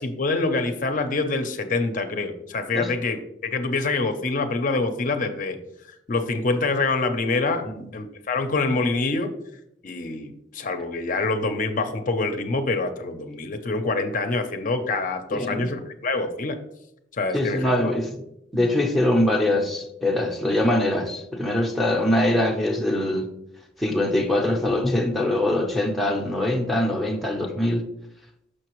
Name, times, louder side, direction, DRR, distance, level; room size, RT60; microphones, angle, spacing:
voice 1, 0.0-5.6 6.1-7.7 7.9-9.3 9.8-16.6 17.1-17.9, left 3 dB, 45° left, 0.5 m, -26 dB
voice 2, 15.3-15.7 17.3-18.2 18.5-23.3 23.8-27.9, left 1 dB, ahead, 0.6 m, -23 dB
6.4 x 5.8 x 3.0 m
head